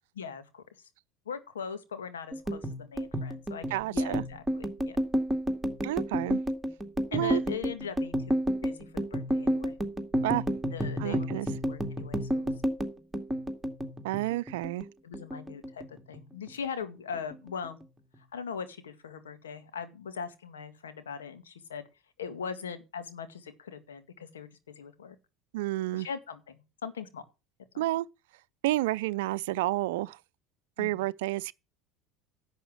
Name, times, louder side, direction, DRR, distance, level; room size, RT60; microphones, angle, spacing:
voice 1, 0.2-0.6 1.3-5.0 7.1-8.3 8.6-9.8 10.7-12.5 15.0-17.8 18.3-21.8 22.2-24.5 24.8-25.2 25.9-27.2 27.7-27.9 30.8-31.0, left 6 dB, 85° left, 2.0 m, -40 dB
sound 1, 2.3-14.9 15.1-16.2 16.5-16.8 17.1-17.8, equal, 10° right, 2.3 m, -31 dB
voice 2, 3.7-4.2 5.8-6.4 7.1-7.4 10.2-10.4 11.0-11.5 14.0-14.8 25.5-26.1 27.8-28.0 28.6-30.2 30.8-31.5, right 17 dB, 75° right, 0.6 m, -30 dB
11.0 x 7.2 x 7.3 m
hypercardioid pair, 75°, 0 cm